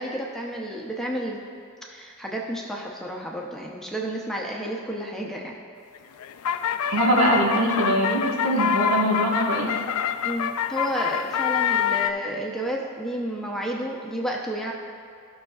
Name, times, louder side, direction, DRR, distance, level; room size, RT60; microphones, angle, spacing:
voice 1, 0.0-1.4 1.9-5.5 10.2-14.7, equal, ahead, -2 dB, 0.7 m, -31 dB
sound 1, 6.0-12.1, left 8 dB, 85° left, 0.3 m, -26 dB
voice 2, 6.9-9.8, right 1 dB, 70° right, -3 dB, 1.5 m, -22 dB
15.5 x 6.3 x 2.4 m, 2.4 s
head